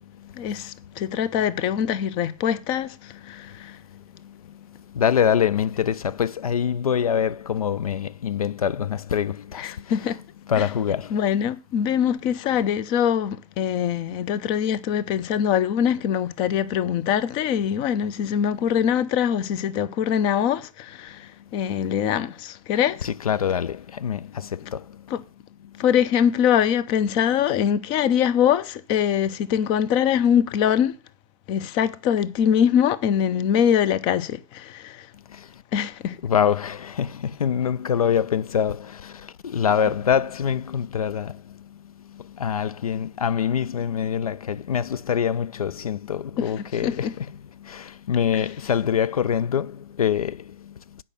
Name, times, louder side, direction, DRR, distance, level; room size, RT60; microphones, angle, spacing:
voice 1, 0.3-3.8 9.6-10.2 10.6-10.7 11.1-23.1 25.1-25.2 25.8-31.0 31.5-35.1 35.7-36.2 46.6-47.1 48.3-48.4, left 9 dB, 25° left, 0.6 m, -23 dB
voice 2, 3.4-9.9 10.5-11.2 23.0-25.2 25.6-25.8 35.3-35.6 36.2-47.3 47.6-51.0, left 8 dB, 80° left, 0.4 m, -25 dB
8.3 x 5.4 x 6.7 m
hypercardioid pair, 125°, 19 cm